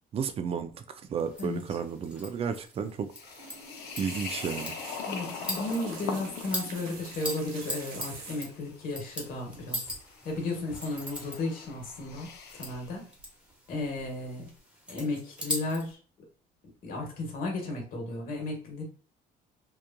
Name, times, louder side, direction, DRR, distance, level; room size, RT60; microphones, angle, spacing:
voice 1, 0.1-3.1 4.0-4.7, right 6 dB, 35° right, 0.4 m, -33 dB
sound 1, 1.2-15.9, equal, 5° right, 0.8 m, -42 dB
sound 2, 3.1-12.9, left 6 dB, 75° left, 0.6 m, -42 dB
sound 3, 3.2-8.7 9.7-10.0 10.3-10.6 11.8-12.4 12.7-13.3 13.7-14.1 14.5-14.6, right 4 dB, 60° right, 0.7 m, -46 dB
voice 2, 5.1-9.8 10.2-13.1 13.7-14.5 14.9-16.0 16.8-18.8, left 2 dB, 55° left, 1.1 m, -34 dB
2.9 x 2.4 x 2.2 m
cardioid pair, 110°, 17 cm